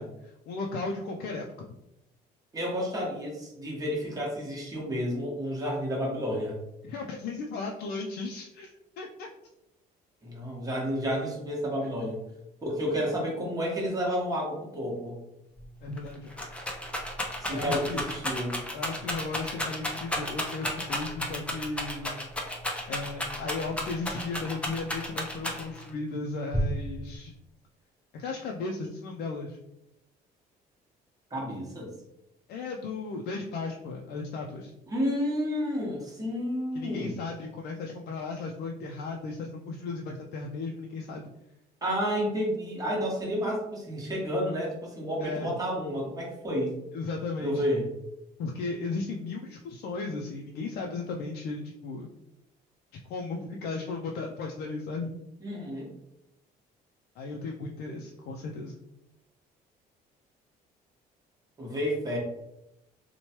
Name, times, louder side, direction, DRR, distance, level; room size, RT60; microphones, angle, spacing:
voice 1, 0.0-1.7 6.8-9.3 15.8-16.3 17.5-18.1 18.7-22.2 22.9-27.3 28.1-29.6 32.5-34.7 36.7-41.3 45.2-45.5 46.9-47.6 48.4-52.1 53.1-55.1 57.2-58.7, left 3 dB, 70° left, 1 dB, 0.4 m, -35 dB
voice 2, 2.5-6.6 10.2-12.2 12.6-15.2 17.4-18.6 31.3-31.9 34.9-37.2 41.8-46.8 47.4-47.9 55.4-55.9 61.6-62.2, equal, 20° right, -3 dB, 1.0 m, -30 dB
Rattle, 15.6-15.7 16.0-25.9 26.5-27.1, equal, 5° left, 0.5 m, -32 dB
3.0 x 2.2 x 2.8 m, 0.86 s
cardioid pair, 110°, 17 cm